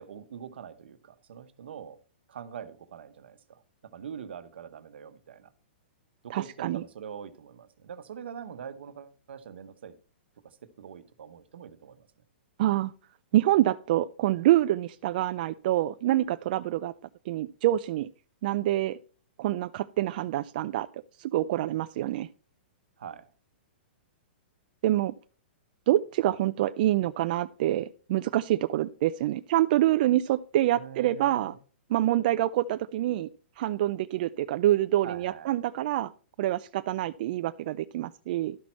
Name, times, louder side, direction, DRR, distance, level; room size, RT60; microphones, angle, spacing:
voice 1, 0.0-2.0 2.3-5.5 6.2-10.0 10.4-12.1 23.0-23.3 30.7-31.6 35.0-35.5, right 8 dB, 75° right, 1.0 m, -43 dB
voice 2, 6.3-6.8 12.6-12.9 13.3-16.9 17.3-18.1 18.4-19.0 19.4-22.3 24.8-25.1 25.9-31.5 31.9-33.3 33.6-36.1 36.4-38.6, right 14 dB, 50° right, 0.4 m, -26 dB
12.5 x 6.1 x 4.3 m
hypercardioid pair, 135°, 6 cm